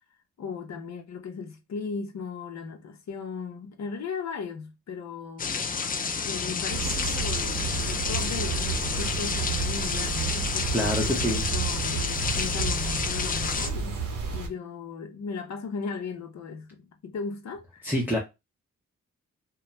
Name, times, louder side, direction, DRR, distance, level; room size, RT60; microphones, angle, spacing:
voice 1, 0.4-5.6 6.2-14.0 14.3-17.9, left 5 dB, 55° left, 0.8 m, -37 dB
sound 1, 5.4-13.7, left 5 dB, 30° left, 0.4 m, -30 dB
sound 2, 6.7-14.5, right 5 dB, 75° right, 0.9 m, -31 dB
voice 2, 10.7-11.4 17.8-18.2, equal, 5° right, 0.8 m, -26 dB
2.3 x 2.2 x 3.0 m
cardioid pair, 60°, 32 cm